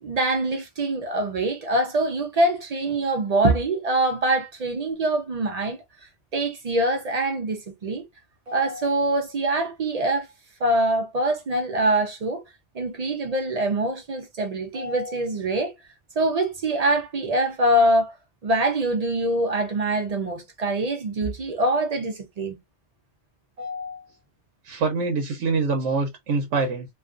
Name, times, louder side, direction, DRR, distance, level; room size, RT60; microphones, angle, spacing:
voice 1, 0.0-5.8 6.3-8.1 8.5-10.3 10.6-12.4 12.7-15.7 16.2-18.1 18.4-22.6 23.6-24.0, right 1 dB, 65° right, 0.4 m, -24 dB
voice 2, 24.6-26.9, right 4 dB, 80° right, 0.9 m, -25 dB
2.4 x 2.3 x 2.4 m
omnidirectional pair, 1.2 m